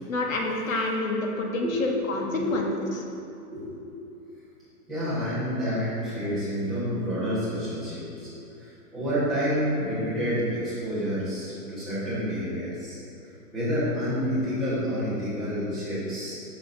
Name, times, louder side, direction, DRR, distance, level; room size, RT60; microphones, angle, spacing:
voice 1, 0.1-2.7, left 2 dB, 60° left, 1 dB, 1.1 m, -28 dB
voice 2, 1.4-1.9 2.3-2.6 3.5-4.0 4.9-13.0 13.5-16.3, equal, ahead, -15 dB, 1.0 m, -29 dB
8.7 x 5.8 x 2.6 m, 2.7 s
hypercardioid pair, 170°, 45 cm